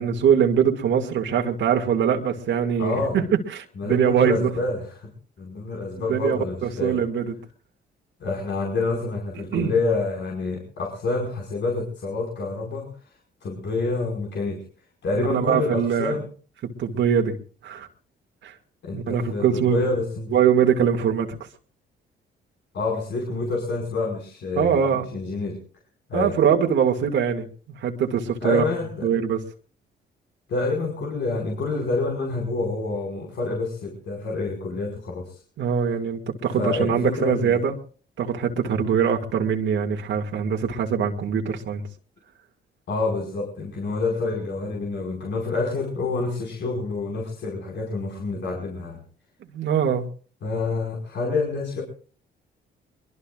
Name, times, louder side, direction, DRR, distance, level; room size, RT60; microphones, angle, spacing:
voice 1, 0.0-3.2 3.5-4.5 6.1-7.4 9.5-9.7 15.3-16.2 16.8-17.4 17.6-17.9 18.4-18.5 18.9-19.8 20.3-21.3 24.6-25.1 26.1-27.5 27.8-28.6 29.0-29.4 35.6-37.8 38.2-41.8 49.5-50.1, right 8 dB, 70° right, 2 dB, 2.2 m, -22 dB
voice 2, 2.8-3.2 3.8-5.1 5.4-7.0 8.2-12.9 13.4-14.6 15.0-16.2 18.8-20.4 22.7-25.6 26.1-26.3 28.4-29.1 30.5-35.4 36.5-37.6 42.9-49.0 50.4-51.8, left 3 dB, 65° left, 0 dB, 5.1 m, -27 dB
22.5 x 22.5 x 2.4 m, 0.41 s
cardioid pair, 90°, 20 cm